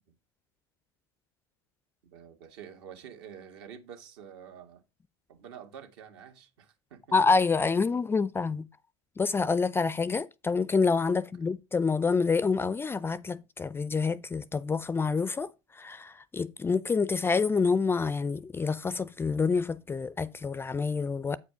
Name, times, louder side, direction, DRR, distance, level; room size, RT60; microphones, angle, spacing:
voice 1, 2.1-4.8 5.3-7.2 11.1-11.2, right 8 dB, 70° right, 1.8 m, -48 dB
voice 2, 7.1-8.6 9.2-15.5 15.8-21.4, left 4 dB, 15° left, 0.4 m, -27 dB
8.5 x 5.0 x 4.8 m
hypercardioid pair, 90°, 14 cm